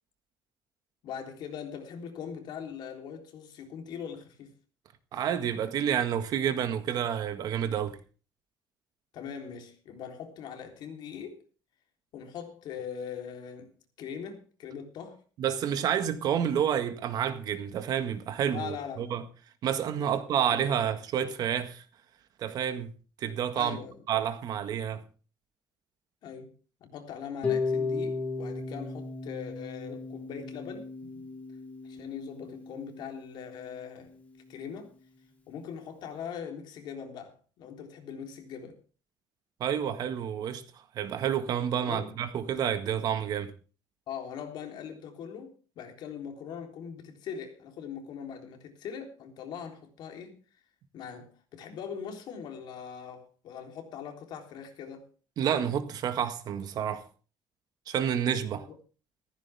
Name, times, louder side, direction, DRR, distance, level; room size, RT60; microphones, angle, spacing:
voice 1, 1.0-4.5 9.1-11.4 12.1-15.2 18.5-19.2 20.0-20.2 20.7-20.8 23.5-24.0 26.2-26.5 26.8-30.9 31.8-34.1 34.5-34.9 35.5-38.8 41.7-42.2 44.1-50.4 50.9-55.1 58.6-58.8, left 7 dB, 60° left, 3.7 m, -41 dB
voice 2, 5.1-8.0 15.4-19.2 19.6-21.8 22.4-22.9 23.2-23.8 24.1-25.0 39.6-40.6 41.0-43.5 55.4-57.0 57.9-58.7, right 9 dB, 50° right, 1.8 m, -29 dB
Harp, 27.4-33.5, left 4 dB, 15° left, 2.8 m, -35 dB
15.0 x 14.5 x 3.6 m
cardioid pair, 175°, 8 cm